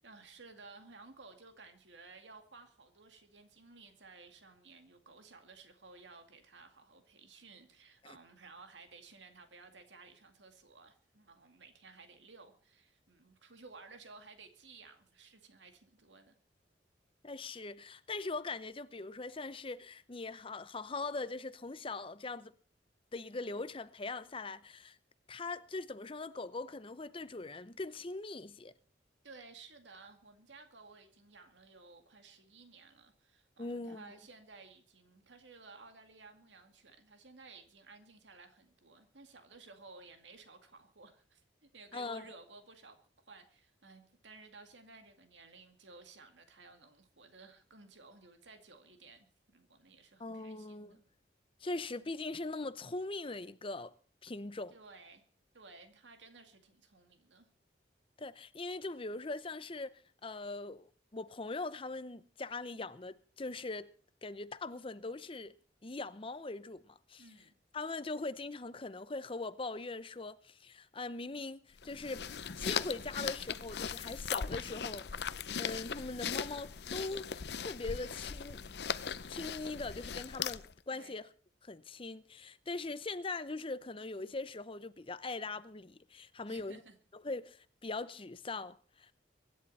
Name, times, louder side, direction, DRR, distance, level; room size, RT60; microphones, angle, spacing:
voice 1, 0.0-16.4 29.2-41.4 41.7-43.0 43.3-51.0 54.7-55.2 55.5-57.5 67.2-67.5 80.9-81.2 86.5-87.0, right 4 dB, 90° right, 2.2 m, -56 dB
voice 2, 17.2-22.5 23.1-25.0 25.3-28.7 33.6-34.1 41.9-42.3 50.2-51.0 51.6-53.9 54.2-54.7 58.2-63.9 64.2-65.6 65.8-67.2 67.7-72.3 72.6-77.3 77.6-78.6 79.3-81.3 81.6-86.8 87.1-89.1, left 3 dB, 30° left, 0.8 m, -41 dB
sound 1, 71.8-80.8, left 7 dB, 65° left, 0.7 m, -39 dB
24.0 x 11.0 x 4.2 m
head